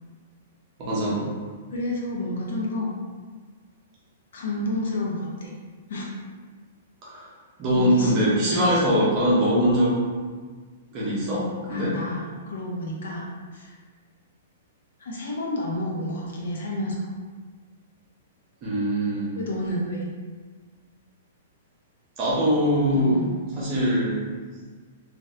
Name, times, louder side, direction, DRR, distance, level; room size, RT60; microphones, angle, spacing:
voice 1, 0.8-1.3 7.0-7.3 7.6-10.0 10.9-11.9 18.6-19.3 22.2-23.2 23.5-24.2, equal, 25° right, -7 dB, 0.8 m, -22 dB
voice 2, 1.7-3.0 4.3-5.5 5.9-6.0 7.7-8.3 11.7-13.8 15.0-17.1 19.3-20.1 22.9-23.3, left 1 dB, 70° left, -2 dB, 0.8 m, -30 dB
2.7 x 2.6 x 3.2 m, 1.5 s
hypercardioid pair, 170°, 0 cm